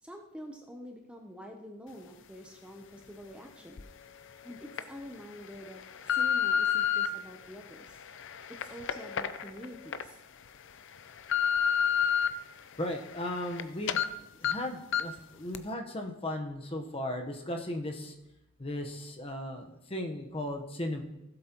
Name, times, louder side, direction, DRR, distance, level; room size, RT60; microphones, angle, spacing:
voice 1, 0.0-3.8 4.4-8.0 8.6-10.2, equal, 5° right, 2 dB, 0.7 m, -47 dB
sound 1, 3.8-3.9 4.5-4.8 5.4-7.1 7.7-10.0 10.5-10.6 11.0-12.3 12.7-13.6 13.9-14.1 14.4-14.5 14.9-15.2 15.5-15.6, left 8 dB, 60° left, 0.5 m, -29 dB
voice 2, 12.8-18.1 18.6-21.0, left 1 dB, 25° left, 3 dB, 1.0 m, -36 dB
16.5 x 7.8 x 3.0 m, 0.90 s
head